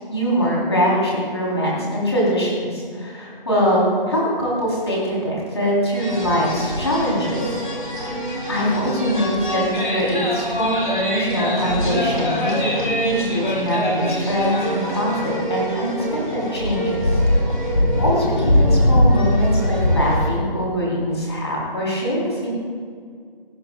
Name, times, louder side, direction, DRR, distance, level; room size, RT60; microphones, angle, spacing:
voice 1, 0.1-7.4 7.9-8.1 8.5-17.2 18.0-22.5, equal, 30° left, -5 dB, 3.6 m, -23 dB
sound 1, 5.9-20.3, equal, 60° left, 4.2 m, -22 dB
19.0 x 16.5 x 2.4 m, 2.1 s
figure-of-eight pair, 175°, 29 cm